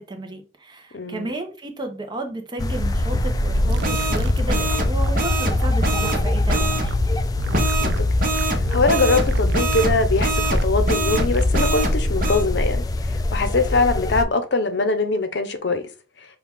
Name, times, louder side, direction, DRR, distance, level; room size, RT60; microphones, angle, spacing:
voice 1, 0.0-6.9, right 2 dB, 25° right, 0.7 m, -33 dB
voice 2, 0.9-1.3 7.8-15.8, left 3 dB, 65° left, 0.7 m, -23 dB
sound 1, 2.6-14.2, left 2 dB, 20° left, 0.3 m, -24 dB
sound 2, 3.5-6.9 7.5-12.4, right 1 dB, 50° right, 1.0 m, -24 dB
sound 3, 3.7-5.1 5.5-7.0 7.4-8.8 9.2-10.6 11.1-11.7, right 5 dB, 65° right, 0.4 m, -32 dB
5.7 x 2.3 x 3.5 m
head